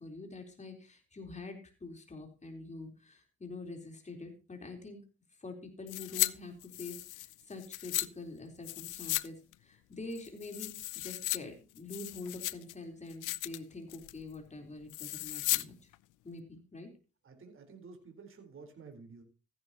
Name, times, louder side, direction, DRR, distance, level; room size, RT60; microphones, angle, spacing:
voice 1, 0.0-5.0 5.4-15.9 16.2-16.9, left 3 dB, 25° left, 3 dB, 3.9 m, -46 dB
sound 1, 5.9-6.3 6.6-8.1 8.6-9.3 9.5-9.6 10.1-11.4 11.8-12.7 13.1-13.6 13.9-14.2 14.9-15.6 15.9-16.0, left 17 dB, 85° left, 0.6 m, -35 dB
voice 2, 17.2-19.2, right 4 dB, 45° right, 4 dB, 4.2 m, -51 dB
15.0 x 11.0 x 2.9 m, 0.34 s
cardioid pair, 90°, 30 cm